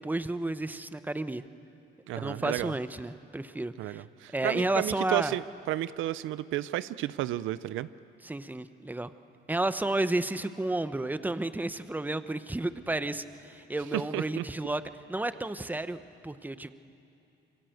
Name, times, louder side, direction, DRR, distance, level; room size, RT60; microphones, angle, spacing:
voice 1, 0.0-1.4 2.2-4.0 4.3-5.4 8.2-9.1 9.5-14.8 15.1-16.0 16.2-16.7, right 2 dB, 10° right, 12 dB, 0.9 m, -31 dB
voice 2, 2.1-2.7 3.8-7.9 13.9-14.4, right 14 dB, 90° right, 16 dB, 0.6 m, -32 dB
27.0 x 24.0 x 7.9 m, 2.8 s
cardioid pair, 90°, 20 cm